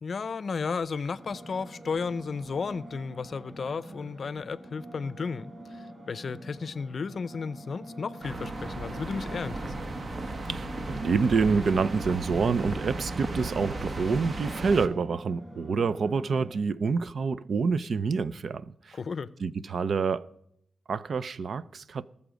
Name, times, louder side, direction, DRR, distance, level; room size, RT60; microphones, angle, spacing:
voice 1, 0.0-9.9 18.9-19.3, left 5 dB, 55° left, 0.5 m, -34 dB
sound 1, 1.1-16.5, right 1 dB, 20° right, 4.4 m, -46 dB
sound 2, 8.2-14.9, right 2 dB, 45° right, 1.0 m, -35 dB
voice 2, 10.5-19.0 19.4-20.3 20.9-22.0, right 5 dB, 65° right, 0.5 m, -27 dB
18.5 x 7.1 x 5.1 m
wide cardioid pair, 100°, 0 cm